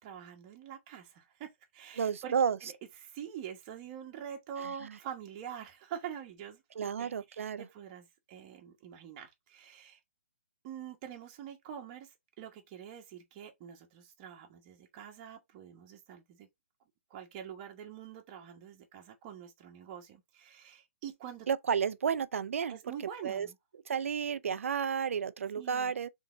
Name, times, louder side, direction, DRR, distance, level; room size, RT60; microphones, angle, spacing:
voice 1, 0.0-2.3 2.6-10.0 10.6-16.5 17.1-21.5 22.7-23.6 25.6-25.9, right 9 dB, 30° right, 1.2 m, -45 dB
voice 2, 2.0-2.6 4.8-4.9 6.8-7.7 21.5-22.8 23.2-23.5 23.9-26.1, right 7 dB, 80° right, 0.5 m, -31 dB
3.7 x 3.6 x 3.9 m
hypercardioid pair, 155°, 7 cm